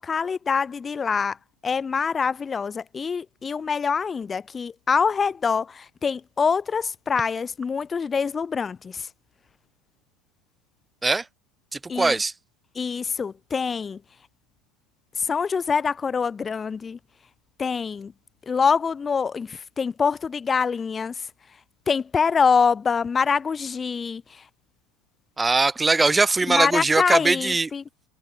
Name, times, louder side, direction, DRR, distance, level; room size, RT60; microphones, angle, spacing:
voice 1, 0.0-1.4 1.6-9.1 11.9-12.2 12.7-14.0 15.1-17.0 17.6-18.1 18.5-21.6 21.9-24.5 26.5-27.8, left 5 dB, 20° left, 1.1 m, -25 dB
voice 2, 11.7-12.3 25.4-27.7, right 3 dB, 10° right, 2.6 m, -21 dB
figure-of-eight pair, 75°, 0 cm